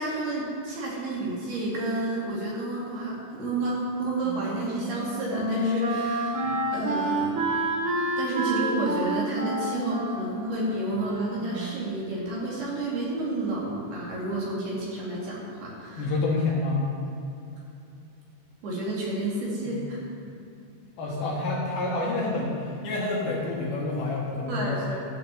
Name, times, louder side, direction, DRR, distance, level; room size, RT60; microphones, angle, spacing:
voice 1, 0.0-7.4 8.2-16.1 18.6-20.0 24.5-25.0, right 2 dB, 60° right, -5 dB, 4.2 m, -30 dB
Wind instrument woodwind instrument, 4.2-12.0, right 1 dB, 80° right, 1.1 m, -29 dB
voice 2, 16.0-16.8 19.6-19.8 21.0-25.0, left 2 dB, 65° left, -3 dB, 2.9 m, -28 dB
14.0 x 6.4 x 7.4 m, 2.7 s
omnidirectional pair, 5.3 m